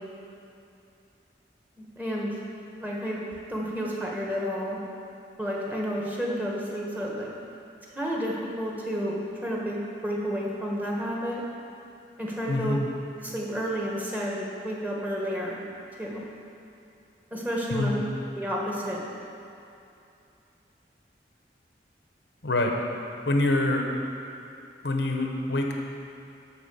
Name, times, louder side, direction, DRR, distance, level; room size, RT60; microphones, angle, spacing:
voice 1, 1.8-2.4 2.8-3.2 3.5-4.8 5.4-7.3 7.9-9.1 9.4-11.4 12.2-12.8 13.2-15.6 16.0-16.2 17.3-18.0 18.3-19.1, equal, 10° right, -4 dB, 1.3 m, -31 dB
voice 2, 12.5-12.8 17.7-17.9 22.4-22.7 23.2-23.8 24.8-25.7, left 2 dB, 75° left, 1 dB, 1.1 m, -25 dB
11.5 x 4.4 x 7.1 m, 2.7 s
head